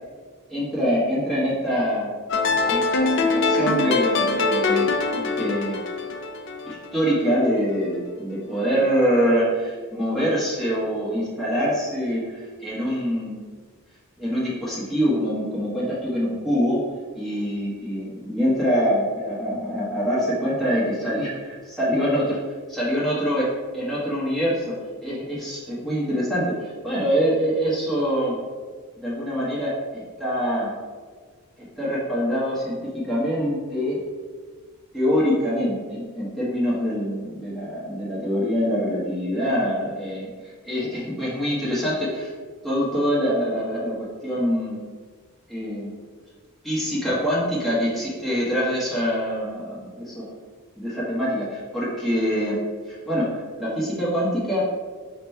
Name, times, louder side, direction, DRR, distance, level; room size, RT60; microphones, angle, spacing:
voice 1, 0.5-2.1 2.6-4.9 5.1-5.8 6.7-13.4 14.2-16.8 17.1-22.4 22.7-23.5 23.7-24.7 25.0-28.3 29.0-30.7 31.8-34.0 34.9-40.3 40.6-42.3 42.6-44.8 45.5-45.9 46.6-50.3 50.8-52.6 52.9-53.3 53.6-54.6, equal, ahead, -9 dB, 1.0 m, -24 dB
sound 1, 2.3-7.4, left 3 dB, 55° left, 0.4 m, -23 dB
4.0 x 2.2 x 4.2 m, 1.5 s
head